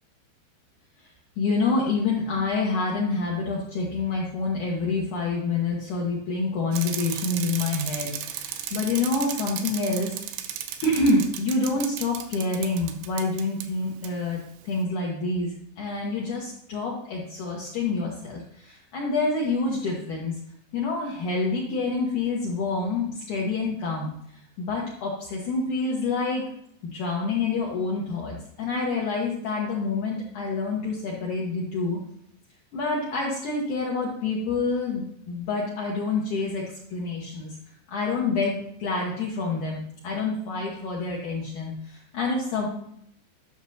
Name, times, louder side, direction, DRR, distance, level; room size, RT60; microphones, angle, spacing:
voice 1, 1.4-10.1 10.8-20.3 20.7-24.1 24.6-26.4 26.9-32.0 32.7-36.6 36.9-37.5 37.9-42.7, left 3 dB, 85° left, -3 dB, 1.7 m, -27 dB
Bicycle, 6.7-13.7 14.0-14.1, right 10 dB, 85° right, 2.4 m, -35 dB
12.0 x 6.3 x 2.8 m, 0.71 s
omnidirectional pair, 5.3 m